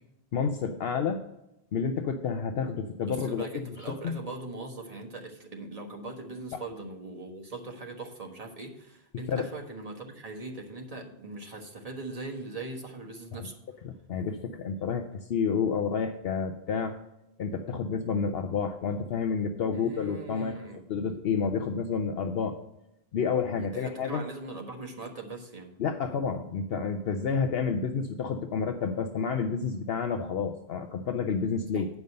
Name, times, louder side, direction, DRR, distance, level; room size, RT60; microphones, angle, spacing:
voice 1, 0.3-1.2 1.7-3.7 4.0-4.2 9.3-9.5 13.3-13.4 13.8-17.0 17.4-20.6 20.9-22.6 23.1-24.2 25.8-31.9, left 5 dB, 70° left, 7 dB, 0.9 m, -30 dB
voice 2, 3.1-13.6 19.7-20.9 23.5-25.7 31.7-31.8, right 2 dB, 35° right, 1 dB, 1.5 m, -40 dB
9.4 x 5.3 x 6.5 m, 0.88 s
omnidirectional pair, 1.1 m